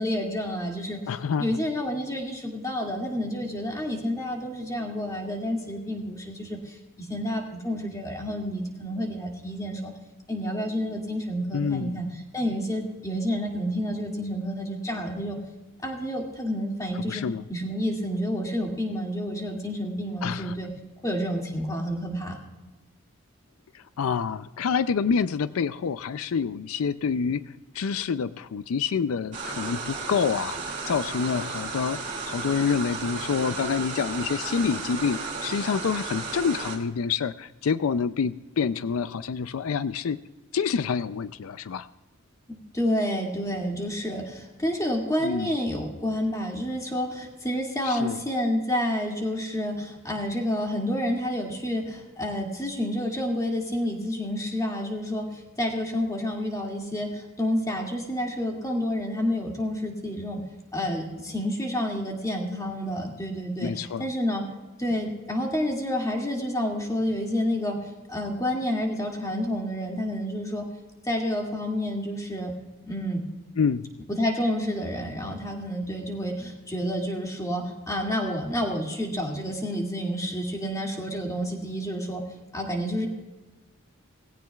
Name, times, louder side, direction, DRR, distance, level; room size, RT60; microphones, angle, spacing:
voice 1, 0.0-1.0 1.4-9.9 10.3-12.1 12.3-15.4 15.8-17.2 17.5-20.7 21.0-22.4 42.5-60.4 60.7-64.4 64.8-70.7 71.0-72.5 72.8-73.2 74.2-82.2 82.5-83.1, equal, 15° left, 0 dB, 2.2 m, -29 dB
voice 2, 1.1-1.6 11.5-12.0 17.1-17.4 20.2-20.5 23.7-40.2 40.5-41.9 45.2-45.6 47.8-48.2 63.6-64.1 73.6-73.9, left 6 dB, 80° left, 14 dB, 0.4 m, -27 dB
sound 1, 29.3-36.8, right 4 dB, 35° right, 2.3 m, -34 dB
19.0 x 16.5 x 2.3 m, 1.1 s
head